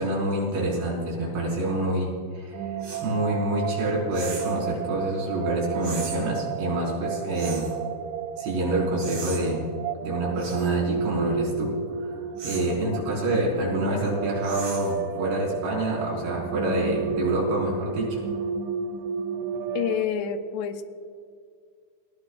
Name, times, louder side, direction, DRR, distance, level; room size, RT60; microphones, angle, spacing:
voice 1, 0.0-2.6 3.0-7.7 8.4-9.6 10.0-11.7 12.4-18.2, right 1 dB, 60° right, -4 dB, 6.7 m, -27 dB
sound 1, 2.5-20.1, right 6 dB, 80° right, 2.9 m, -32 dB
sound 2, 2.8-3.1 4.1-4.6 5.8-6.2 7.3-7.8 9.0-9.4 10.4-10.7 12.4-12.7 14.4-15.0, right 4 dB, 40° right, 4.4 m, -37 dB
voice 2, 19.8-20.8, left 8 dB, 75° left, 7 dB, 2.7 m, -28 dB
29.0 x 20.5 x 2.4 m, 2.2 s
omnidirectional pair, 5.4 m